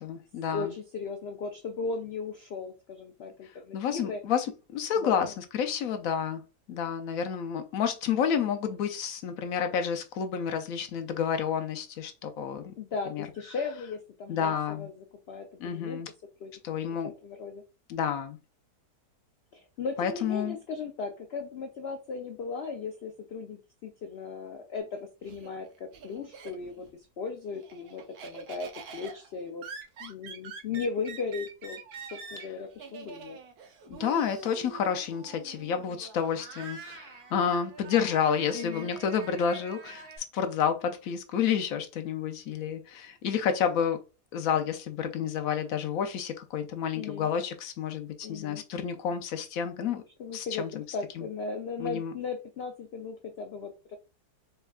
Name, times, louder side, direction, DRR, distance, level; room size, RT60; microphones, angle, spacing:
voice 1, 0.0-0.7 3.7-4.5 4.7-6.4 6.7-12.7 13.1-13.3 14.3-14.9 15.6-16.1 16.6-17.1 17.9-18.4 20.0-20.6 33.9-44.0 44.3-50.0 50.3-50.8 51.2-51.3 51.8-52.1, left 7 dB, 70° left, 0.9 m, -30 dB
voice 2, 0.5-4.2 5.0-5.3 12.8-16.0 16.4-16.5 17.0-17.6 19.5-29.6 30.0-31.8 32.1-33.4 38.5-38.9 46.9-47.3 48.2-48.6 50.2-54.0, left 4 dB, 90° left, 0.5 m, -37 dB
Laughter, 24.8-26.9 27.3-40.2, right 5 dB, 70° right, 1.3 m, -46 dB
4.4 x 3.3 x 2.3 m
omnidirectional pair, 1.7 m